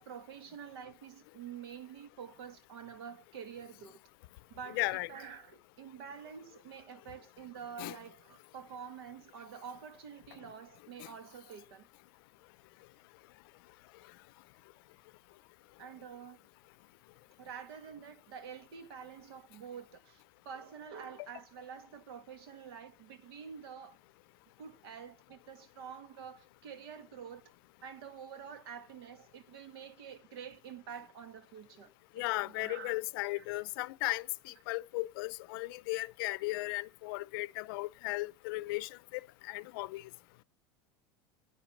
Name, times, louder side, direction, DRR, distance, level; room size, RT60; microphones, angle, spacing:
voice 1, 0.0-4.0 4.5-4.8 5.1-11.9 15.8-16.4 17.4-24.0 24.6-27.4 27.8-31.9 32.2-33.0 33.3-33.5, right 7 dB, 85° right, 2.0 m, -48 dB
voice 2, 4.7-5.1 7.8-8.0 11.0-11.1 21.2-21.3 32.2-40.1, left 21 dB, 70° left, 0.5 m, -36 dB
10.5 x 9.3 x 7.2 m
supercardioid pair, 160°, 12 cm